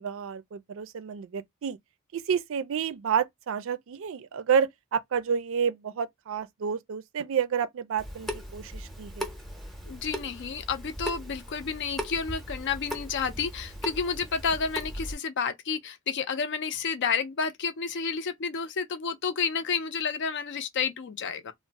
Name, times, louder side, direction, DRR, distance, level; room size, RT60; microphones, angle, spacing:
voice 1, 0.0-1.8 2.1-9.3, right 7 dB, 70° right, 0.4 m, -30 dB
Water tap faucet / Sink (filling or washing) / Drip, 8.0-15.1, equal, ahead, 0.7 m, -38 dB
voice 2, 9.9-21.5, left 5 dB, 55° left, 0.5 m, -30 dB
2.5 x 2.0 x 3.9 m
head